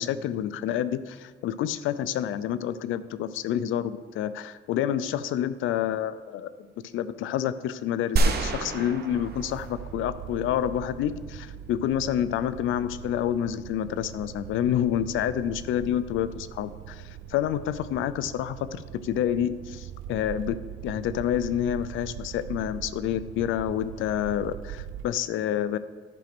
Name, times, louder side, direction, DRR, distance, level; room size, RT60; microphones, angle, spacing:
voice 1, 0.0-6.5 6.9-20.6 20.8-25.8, left 10 dB, 85° left, 15 dB, 0.5 m, -28 dB
sound 1, 8.2-10.4, right 3 dB, 55° right, 1.0 m, -27 dB
sound 2, 9.1-25.0, right 10 dB, 75° right, 0.5 m, -41 dB
10.5 x 5.0 x 6.0 m, 1.5 s
cardioid pair, 90°, 20 cm